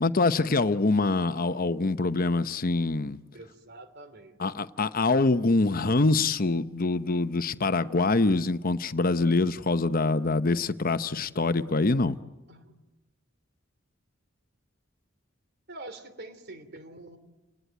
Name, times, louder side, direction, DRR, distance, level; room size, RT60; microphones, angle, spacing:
voice 1, 0.0-3.2 4.4-12.1, left 3 dB, 45° left, 0.8 m, -25 dB
voice 2, 3.3-4.4 12.5-12.8 15.7-17.2, right 2 dB, 55° right, 3.4 m, -45 dB
30.0 x 19.5 x 9.3 m
head